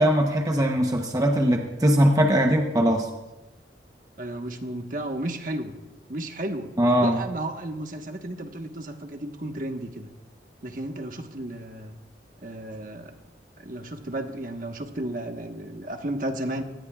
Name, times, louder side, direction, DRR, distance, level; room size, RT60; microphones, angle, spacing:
voice 1, 0.0-3.1 6.8-7.2, equal, 20° right, 2 dB, 0.9 m, -21 dB
voice 2, 4.2-5.7 6.1-6.7 7.0-10.1 10.6-11.9 12.4-13.1 13.6-16.6, right 1 dB, 50° right, 4 dB, 1.3 m, -33 dB
24.5 x 18.5 x 2.4 m, 1.0 s
head